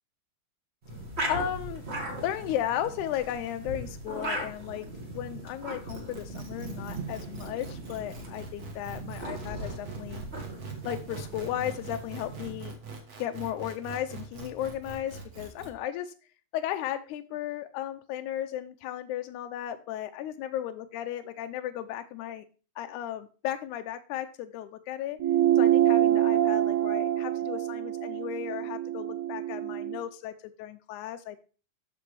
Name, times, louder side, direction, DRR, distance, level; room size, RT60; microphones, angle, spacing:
sound 1, 0.8-12.6, right 1 dB, 30° right, 1.4 m, -38 dB
voice 1, 1.3-1.9 2.2-4.9 5.1-10.2 10.9-12.8 13.2-16.1 16.5-22.5 22.8-25.2 25.6-31.4, left 11 dB, 80° left, 7 dB, 1.8 m, -35 dB
sound 2, 5.9-15.7, right 3 dB, 90° right, 0.8 m, -43 dB
sound 3, 25.2-30.0, right 12 dB, 75° right, 2.0 m, -25 dB
13.5 x 5.1 x 3.3 m, 0.37 s
omnidirectional pair, 3.8 m